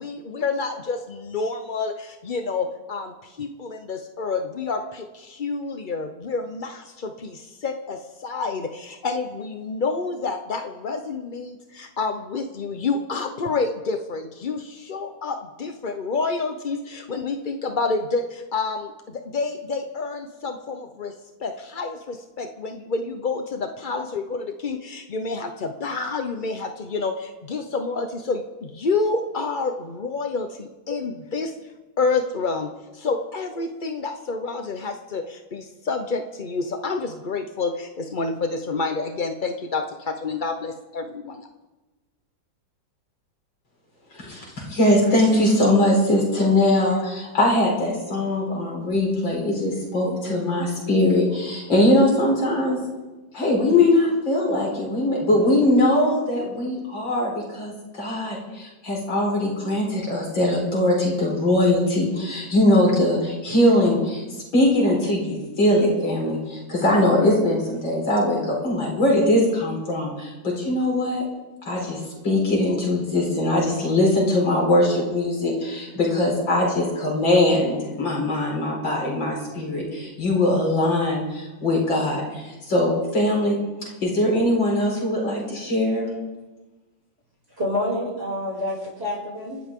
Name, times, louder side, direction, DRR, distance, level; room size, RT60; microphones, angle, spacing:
voice 1, 0.0-21.1 21.4-31.5 32.0-41.5, left 4 dB, 50° left, 6 dB, 0.6 m, -28 dB
voice 2, 44.1-52.8 53.3-64.2 64.5-71.3 71.6-86.1, left 1 dB, 70° left, -2 dB, 5.2 m, -21 dB
voice 3, 87.6-89.6, left 1 dB, 30° right, -5 dB, 6.8 m, -27 dB
29.5 x 12.5 x 3.7 m, 1.1 s
omnidirectional pair, 2.1 m